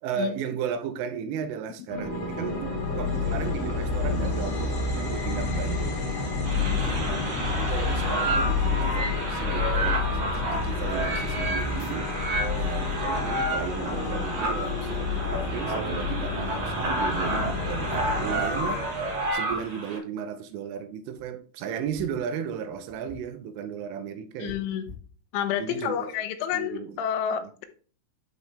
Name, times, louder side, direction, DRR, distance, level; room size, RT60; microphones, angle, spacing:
voice 1, 0.0-6.3 6.7-12.1 12.5-24.6 25.6-26.1 26.5-27.0 27.3-27.5, right 7 dB, 85° right, 3.3 m, -35 dB
sound 1, 1.9-19.3, left 4 dB, 20° left, 2.2 m, -29 dB
sound 2, 6.4-20.0, right 2 dB, 60° right, 1.7 m, -30 dB
sound 3, 7.6-7.9 8.7-8.8 9.0-9.3 9.9-10.4 11.4-12.4 12.7-14.1 14.6-15.0 15.7-16.1 16.7-16.8 17.0-17.1 17.9-18.4 19.4-19.6 21.0-21.2 21.8-23.3 23.6-23.7 24.4-25.6 26.1-26.3, left 4 dB, 55° left, 3.7 m, -47 dB
voice 2, 24.4-24.9 25.3-27.7, left 9 dB, 90° left, 3.4 m, -29 dB
11.0 x 4.5 x 3.4 m
omnidirectional pair, 5.6 m